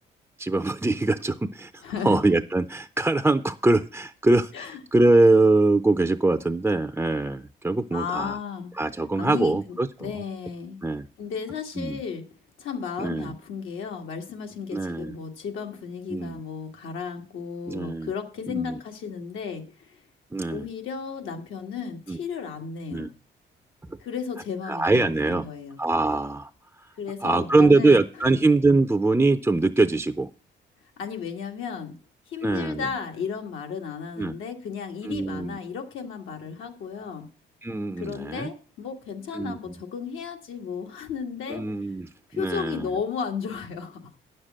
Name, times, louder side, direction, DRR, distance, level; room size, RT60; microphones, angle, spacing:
voice 1, 0.4-8.4 8.8-10.1 10.8-11.1 11.8-12.0 13.0-13.4 14.7-15.2 16.1-16.4 17.7-18.1 18.5-18.8 20.3-20.7 22.1-22.2 22.9-23.1 23.9-24.0 24.7-25.5 25.8-26.5 27.2-30.3 32.4-32.9 34.2-34.4 35.0-35.6 37.6-38.5 39.3-39.6 41.5-42.9, right 2 dB, 10° right, 8 dB, 0.5 m, -23 dB
voice 2, 1.8-2.2 4.5-4.8 7.9-8.7 9.2-10.8 11.2-12.2 12.6-19.9 20.5-23.1 24.0-25.8 27.0-28.0 31.0-32.0 32.3-37.3 38.0-41.6 42.3-44.0, left 6 dB, 80° left, 4 dB, 1.9 m, -34 dB
9.5 x 6.6 x 7.4 m, 0.39 s
cardioid pair, 90°, 20 cm